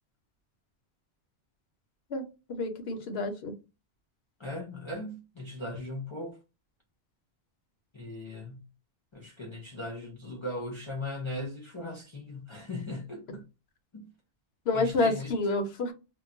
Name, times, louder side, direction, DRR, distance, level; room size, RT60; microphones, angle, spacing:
voice 1, 2.5-3.5 14.7-15.9, left 2 dB, 75° left, 0.8 m, -28 dB
voice 2, 4.4-6.4 7.9-8.7 9.1-13.5 13.9-14.1 14.7-15.3, left 1 dB, 40° left, 0.4 m, -38 dB
2.2 x 2.1 x 3.7 m
omnidirectional pair, 1.1 m